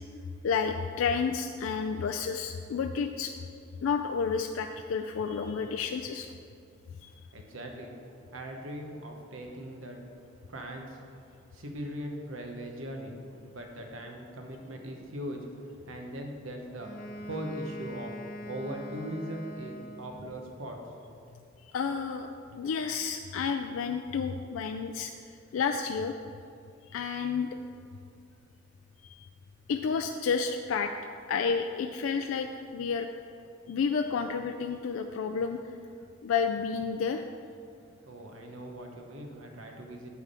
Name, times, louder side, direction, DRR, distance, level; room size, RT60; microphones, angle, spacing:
voice 1, 0.4-3.3 3.8-6.3 7.0-7.1 21.7-25.1 25.5-26.1 26.9-27.5 29.0-29.3 29.7-30.9 31.3-33.1 33.7-35.6 36.2-37.2, left 6 dB, 90° left, 5 dB, 0.3 m, -30 dB
voice 2, 7.3-7.9 8.3-10.0 10.5-11.0 11.5-13.1 13.4-16.9 17.2-18.1 18.5-20.8 38.1-40.1, equal, 85° right, 2 dB, 1.0 m, -40 dB
Wind instrument woodwind instrument, 16.8-20.5, equal, 45° left, 0.9 m, -43 dB
9.3 x 3.5 x 6.7 m, 2.4 s
head